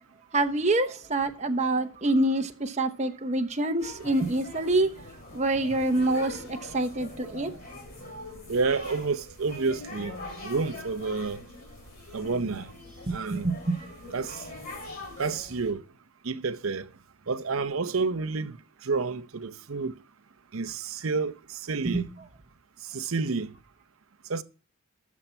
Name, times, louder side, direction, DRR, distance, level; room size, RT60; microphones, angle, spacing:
voice 1, 0.3-4.9 5.3-7.5 13.1-13.8 21.8-22.0, right 2 dB, 30° right, 1.0 m, -26 dB
sound 1, 3.8-15.7, left 2 dB, 40° left, 2.8 m, -43 dB
voice 2, 8.5-11.4 12.1-12.7 13.1-13.5 14.1-14.4 15.2-15.8 16.2-16.9 17.3-18.6 18.8-20.0 20.5-22.1 22.9-23.5 24.3-24.4, right 4 dB, 70° right, 0.7 m, -29 dB
12.0 x 7.3 x 4.4 m
head